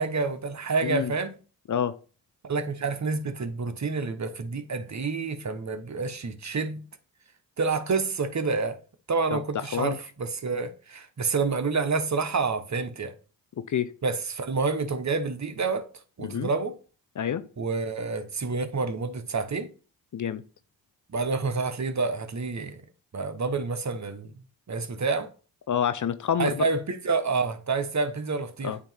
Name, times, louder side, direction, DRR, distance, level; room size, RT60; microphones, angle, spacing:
voice 1, 0.0-1.3 2.4-6.8 7.6-8.8 9.1-13.1 14.0-15.9 16.2-16.7 17.6-19.7 21.1-22.8 23.1-24.3 24.7-25.3 26.4-28.7, right 4 dB, 40° right, 1.2 m, -28 dB
voice 2, 0.8-1.1 1.7-1.9 9.3-10.0 13.6-13.9 16.2-16.5 17.2-17.4 20.1-20.4 25.7-26.7 28.6-28.8, left 8 dB, 45° left, 0.6 m, -28 dB
8.6 x 3.0 x 5.6 m
supercardioid pair, 45°, 42 cm